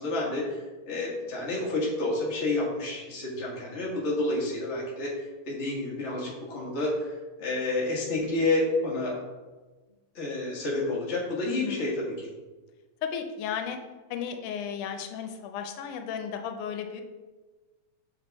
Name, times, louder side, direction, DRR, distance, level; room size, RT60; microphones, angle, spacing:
voice 1, 0.0-9.1 10.1-12.3, left 2 dB, 35° left, -5 dB, 1.1 m, -29 dB
voice 2, 11.4-11.9 13.0-13.8 14.1-17.0, left 7 dB, 90° left, 6 dB, 2.1 m, -34 dB
6.6 x 4.6 x 3.4 m, 1.3 s
omnidirectional pair, 3.4 m